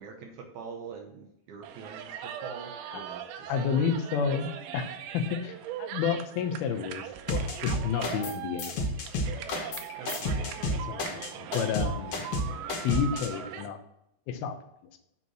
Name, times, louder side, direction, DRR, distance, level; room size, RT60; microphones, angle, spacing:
voice 1, 0.0-2.1 2.4-3.6 10.0-10.6, right 5 dB, 70° right, 3 dB, 1.9 m, -44 dB
sound 1, 1.6-13.7, right 10 dB, 90° right, 2.6 m, -40 dB
voice 2, 3.5-8.9 10.4-12.2 12.8-13.8 14.3-14.6, left 6 dB, 90° left, 5 dB, 2.8 m, -31 dB
sound 2, 7.3-8.3 8.6-13.3, left 1 dB, 60° left, 1.6 m, -31 dB
8.2 x 4.2 x 6.2 m, 0.80 s
omnidirectional pair, 4.2 m